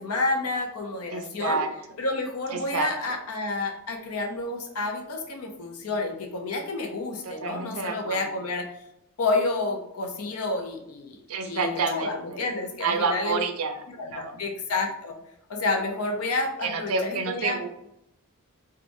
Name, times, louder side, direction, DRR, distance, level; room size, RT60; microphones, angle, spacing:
voice 1, 0.0-1.6 2.0-8.7 9.2-13.4 13.9-15.2 15.5-17.6, left 3 dB, 75° left, 3 dB, 0.7 m, -30 dB
voice 2, 1.1-1.7 2.5-2.9 7.2-8.3 11.3-12.5 12.8-14.4 16.6-17.7, right 4 dB, 70° right, 6 dB, 0.5 m, -29 dB
4.6 x 2.4 x 2.6 m, 0.84 s
head